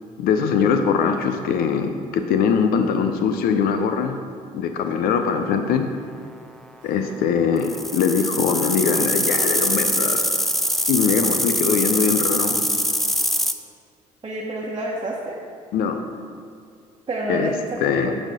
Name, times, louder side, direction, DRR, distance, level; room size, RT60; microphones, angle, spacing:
voice 1, 0.2-4.2 4.5-5.8 6.8-10.2 10.9-12.6 15.7-16.0 17.3-17.5 17.8-18.1, left 6 dB, 75° left, 6 dB, 0.6 m, -21 dB
sound 1, 7.6-13.5, equal, ahead, 0.5 m, -23 dB
voice 2, 14.2-15.4 17.1-18.2, right 1 dB, 30° right, -4 dB, 1.2 m, -29 dB
8.9 x 4.3 x 5.0 m, 2.3 s
supercardioid pair, 65°, 16 cm